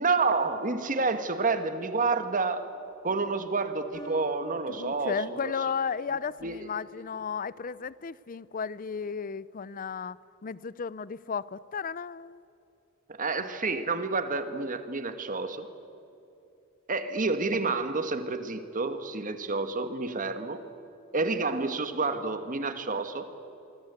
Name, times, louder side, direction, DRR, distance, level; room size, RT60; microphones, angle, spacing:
voice 1, 0.0-2.7 3.0-5.5 6.4-6.7 13.1-15.7 16.9-20.6 21.1-23.3, right 3 dB, 40° right, 1.7 m, -29 dB
sound 1, 2.7-3.2 3.9-6.8, equal, 20° left, 2.5 m, -50 dB
voice 2, 4.7-12.4, left 6 dB, 40° left, 0.5 m, -34 dB
26.0 x 25.0 x 8.2 m
head